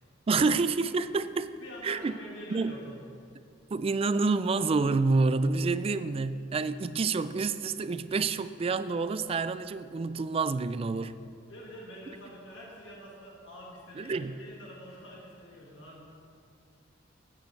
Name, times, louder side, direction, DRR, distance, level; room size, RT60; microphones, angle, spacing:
voice 1, 0.3-1.5 1.8-2.1 2.5-2.8 3.7-11.2 14.0-14.4, right 4 dB, 30° right, 13 dB, 0.3 m, -28 dB
voice 2, 1.6-3.0 11.5-16.0, equal, 70° left, -4 dB, 1.8 m, -46 dB
15.0 x 8.5 x 3.2 m, 2.3 s
head